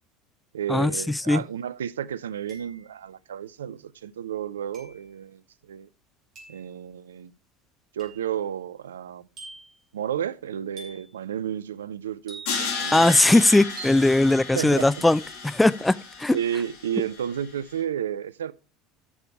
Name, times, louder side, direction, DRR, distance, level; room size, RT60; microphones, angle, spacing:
voice 1, 0.5-5.9 6.5-7.3 7.9-9.2 9.9-13.4 14.5-15.0 16.3-18.5, right 9 dB, 80° right, 0.5 m, -32 dB
sound 1, 1.3-1.4 2.5-3.0 4.7-5.1 6.4-6.7 8.0-8.3 9.4-9.8 10.8-11.2 12.3-12.8 13.8-14.1, right 4 dB, 45° right, 5.2 m, -44 dB
Crash cymbal, 12.5-17.5, left 5 dB, 65° left, 2.4 m, -34 dB
voice 2, 12.9-16.4, left 2 dB, 10° left, 0.5 m, -19 dB
11.0 x 6.9 x 4.7 m
hypercardioid pair, 70°, 0 cm